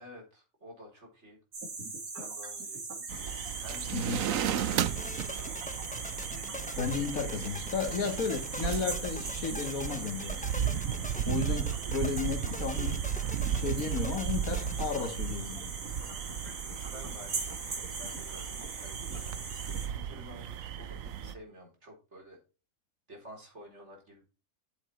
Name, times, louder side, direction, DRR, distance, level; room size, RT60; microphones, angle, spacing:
voice 1, 0.0-1.4 2.2-5.7 16.9-19.4 19.8-22.4 23.1-24.2, equal, 50° right, 4.5 m, -51 dB
sound 1, 1.5-19.9, right 3 dB, 85° right, 2.8 m, -41 dB
sound 2, 3.1-21.3, right 9 dB, 70° right, 1.1 m, -35 dB
voice 2, 3.9-4.2 6.8-10.5 11.3-13.0 13.5-15.6, left 5 dB, 75° left, 2.0 m, -33 dB
sound 3, 5.0-15.1, left 1 dB, 10° left, 0.3 m, -43 dB
8.0 x 7.7 x 4.4 m
omnidirectional pair, 1.5 m